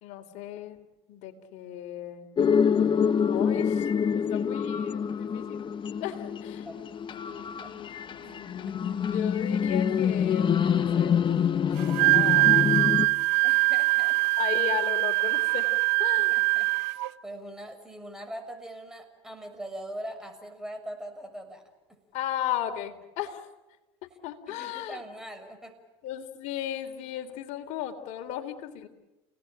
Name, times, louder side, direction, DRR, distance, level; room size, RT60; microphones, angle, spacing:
voice 1, 0.0-2.3 3.3-3.9 4.1-5.7 6.0-6.7 7.2-11.2 11.6-12.7 14.4-15.7 16.0-16.4 22.1-23.4 24.0-25.0 26.0-28.9, left 11 dB, 65° left, 5 dB, 3.7 m, -36 dB
sound 1, 2.4-13.1, left 7 dB, 35° left, 1.3 m, -26 dB
voice 2, 8.2-9.0 13.4-14.2 16.3-21.6 21.9-22.0 24.5-25.7, right 1 dB, 5° right, 5 dB, 6.7 m, -42 dB
Wind instrument woodwind instrument, 11.8-17.1, right 24 dB, 75° right, 0.9 m, -23 dB
30.0 x 19.0 x 9.0 m, 1.1 s
hypercardioid pair, 80°, 14 cm